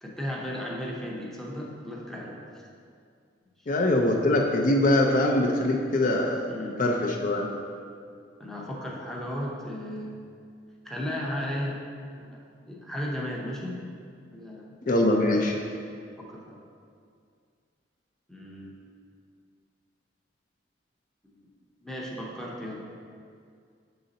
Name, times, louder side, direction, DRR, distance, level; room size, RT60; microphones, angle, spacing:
voice 1, 0.0-2.4 6.5-6.8 8.4-10.2 10.8-11.8 12.1-12.4 12.7-13.9 14.3-15.0 16.2-16.6 18.3-18.8 21.2-21.5 21.8-22.9, equal, ahead, -3 dB, 0.6 m, -35 dB
voice 2, 3.7-6.5 6.8-7.5 14.9-15.6, left 1 dB, 45° left, 1 dB, 0.4 m, -23 dB
6.5 x 3.9 x 4.0 m, 2.3 s
head